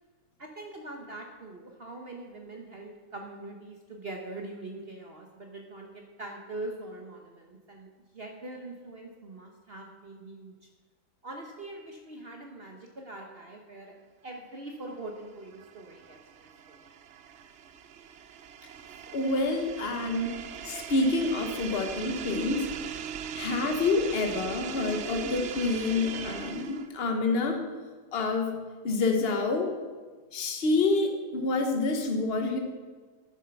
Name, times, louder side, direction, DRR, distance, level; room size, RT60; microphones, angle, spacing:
voice 1, 0.4-7.9 8.1-10.5 11.2-13.9 14.2-16.8, right 2 dB, 40° right, 2 dB, 1.0 m, -43 dB
sound 1, 15.1-27.0, right 8 dB, 85° right, 0.6 m, -40 dB
voice 2, 19.1-20.4 20.6-22.7 23.3-27.6 28.1-28.6 28.8-29.7 30.3-32.6, left 3 dB, 40° left, 4 dB, 1.3 m, -27 dB
10.5 x 7.3 x 5.7 m, 1.4 s
omnidirectional pair, 1.8 m